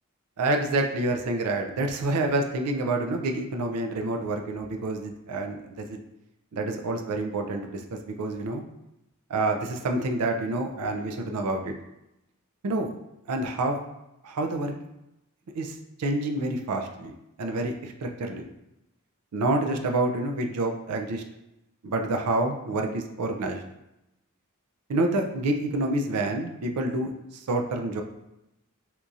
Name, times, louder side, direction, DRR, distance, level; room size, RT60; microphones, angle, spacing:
voice 1, 0.4-6.0 6.5-8.6 9.3-11.7 12.6-12.9 13.3-13.8 14.2-14.7 15.5-17.1 17.4-18.5 19.3-21.2 21.8-23.6 24.9-28.0, right 2 dB, 85° right, 4 dB, 0.4 m, -28 dB
4.3 x 2.4 x 2.6 m, 0.89 s
head